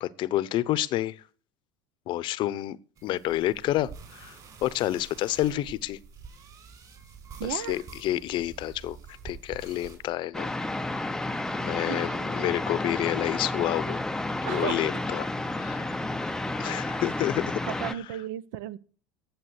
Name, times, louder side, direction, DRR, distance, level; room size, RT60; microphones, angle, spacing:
voice 1, 0.0-1.2 2.1-2.8 3.0-4.4 4.6-6.0 7.5-9.0 9.2-10.5 10.9-11.1 11.6-14.0 14.5-15.3 15.6-16.0 16.6-17.6, left 14 dB, 50° left, 0.8 m, -29 dB
sound 1, 3.0-10.1, right 5 dB, 40° right, 4.5 m, -47 dB
voice 2, 7.4-7.8 11.9-12.2 14.4-14.9 16.9-17.2 17.7-18.8, right 12 dB, 75° right, 0.8 m, -35 dB
sound 2, 10.3-17.9, left 2 dB, 5° left, 0.5 m, -31 dB
10.5 x 7.6 x 8.1 m
supercardioid pair, 120°, 11 cm